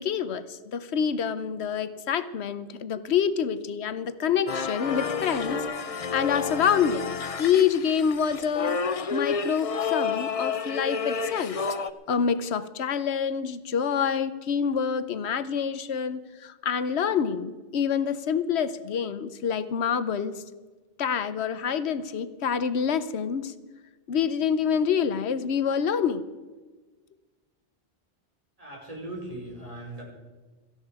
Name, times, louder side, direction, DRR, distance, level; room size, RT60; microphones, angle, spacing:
voice 1, 0.0-7.1 7.4-11.6 12.1-20.4 21.0-23.5 24.1-26.3, left 7 dB, 85° left, 13 dB, 1.1 m, -27 dB
sound 1, 4.5-11.9, left 5 dB, 40° left, 0.6 m, -30 dB
voice 2, 28.6-30.0, right 1 dB, 35° right, -2 dB, 5.0 m, -39 dB
17.5 x 14.0 x 4.8 m, 1.3 s
omnidirectional pair, 1.1 m